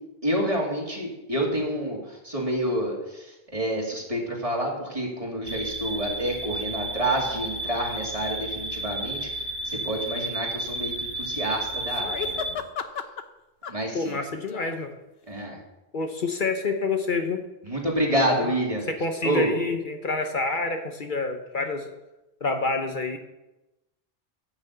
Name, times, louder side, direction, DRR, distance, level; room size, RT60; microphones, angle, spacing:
voice 1, 0.2-2.0 2.2-3.2 3.5-9.3 9.6-12.6 13.7-14.2 15.3-15.6 17.6-18.8 19.2-19.5, right 1 dB, 35° right, -2 dB, 2.7 m, -28 dB
sound 1, 5.4-12.5, right 1 dB, 50° right, 1.5 m, -32 dB
sound 2, 11.7-13.2 13.6-14.8 15.4-15.5, left 7 dB, 75° left, 1.0 m, -35 dB
voice 2, 13.9-14.9 15.9-17.4 18.3-18.5 18.8-22.0 22.4-23.2, left 3 dB, 55° left, 5 dB, 1.1 m, -28 dB
10.5 x 6.1 x 8.0 m, 0.99 s
omnidirectional pair, 1.0 m